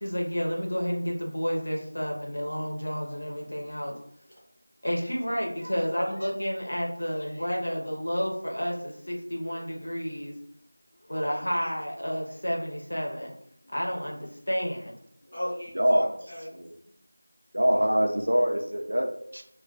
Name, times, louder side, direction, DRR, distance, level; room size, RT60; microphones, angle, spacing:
voice 1, 0.0-4.0 4.8-10.3 11.0-13.3 13.7-15.0, equal, 60° left, -1 dB, 0.8 m, -30 dB
voice 2, 15.2-17.0, equal, 25° left, -6 dB, 0.8 m, -39 dB
voice 3, 15.7-16.1 16.5-16.7 17.5-19.4, equal, 55° right, 2 dB, 0.5 m, -24 dB
2.2 x 2.2 x 3.9 m, 0.69 s
figure-of-eight pair, 180°, 0 cm